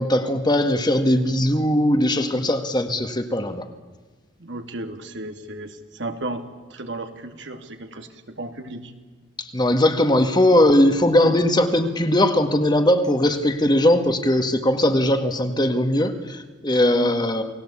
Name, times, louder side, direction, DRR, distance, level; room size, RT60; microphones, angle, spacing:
voice 1, 0.0-3.7 9.4-17.4, left 1 dB, 25° left, 7 dB, 1.8 m, -19 dB
voice 2, 4.4-6.4 6.7-8.9 16.9-17.2, right 2 dB, 70° right, 6 dB, 2.5 m, -34 dB
29.0 x 19.0 x 8.6 m, 1.4 s
head